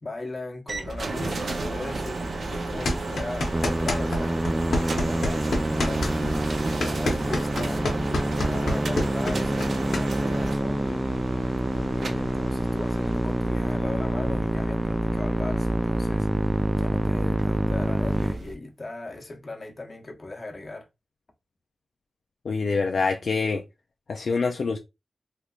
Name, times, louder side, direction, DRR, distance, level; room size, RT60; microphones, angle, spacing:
voice 1, 0.0-4.4 4.8-6.6 6.8-7.8 8.2-11.1 11.7-20.9, left 2 dB, 40° left, 1.1 m, -38 dB
sound 1, 0.7-18.5, right 2 dB, 65° right, 0.6 m, -33 dB
sound 2, 2.9-4.2 4.5-10.1, left 1 dB, 85° left, 1.1 m, -27 dB
Musical instrument, 3.5-18.3, right 1 dB, 10° right, 0.5 m, -27 dB
voice 2, 22.4-23.6 24.1-24.8, left 4 dB, 70° left, 0.4 m, -25 dB
3.4 x 2.9 x 2.5 m
cardioid pair, 65°, 0 cm